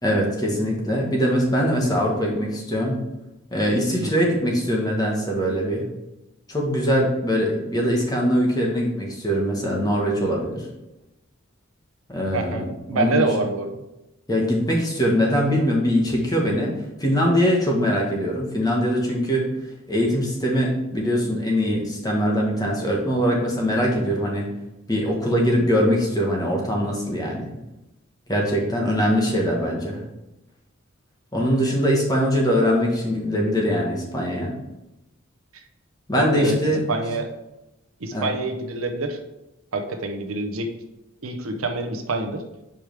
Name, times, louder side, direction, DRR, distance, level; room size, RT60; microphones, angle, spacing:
voice 1, 0.0-3.0 3.5-5.8 6.5-10.6 12.1-13.3 14.3-16.7 17.0-19.4 19.9-24.5 24.9-27.5 28.3-30.0 31.3-34.5 36.1-37.0 38.1-38.3, equal, 20° left, -2 dB, 1.3 m, -22 dB
voice 2, 12.3-13.8 36.2-36.6 36.9-37.3 38.0-39.2 39.7-40.7 41.2-42.4, right 3 dB, 80° right, 6 dB, 0.8 m, -26 dB
5.2 x 4.9 x 4.6 m, 0.96 s
head